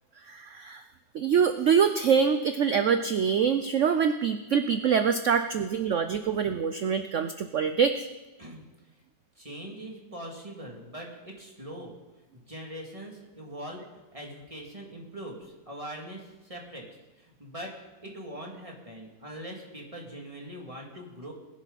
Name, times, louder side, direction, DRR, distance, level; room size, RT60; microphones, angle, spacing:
voice 1, 0.3-0.8 1.1-8.1, right 7 dB, 70° right, 8 dB, 0.7 m, -25 dB
voice 2, 9.4-12.0 12.3-13.9 14.1-16.9 17.2-17.7 18.0-21.3, right 1 dB, 20° right, -1 dB, 2.4 m, -42 dB
20.5 x 10.5 x 4.1 m, 1.1 s
omnidirectional pair, 2.0 m